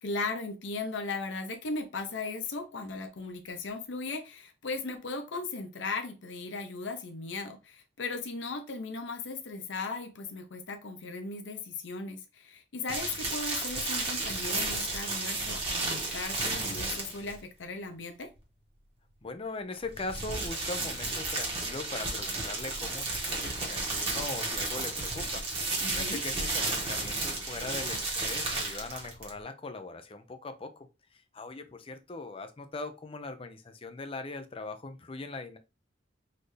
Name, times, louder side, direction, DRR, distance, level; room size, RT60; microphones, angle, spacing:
voice 1, 0.0-18.3 25.8-26.2, left 3 dB, 85° left, 0.7 m, -37 dB
sound 1, 12.9-17.4 19.8-29.4, right 2 dB, 30° right, 1.3 m, -33 dB
voice 2, 19.2-30.9 31.1-35.6, left 3 dB, 30° left, 0.5 m, -40 dB
4.1 x 2.6 x 3.2 m
head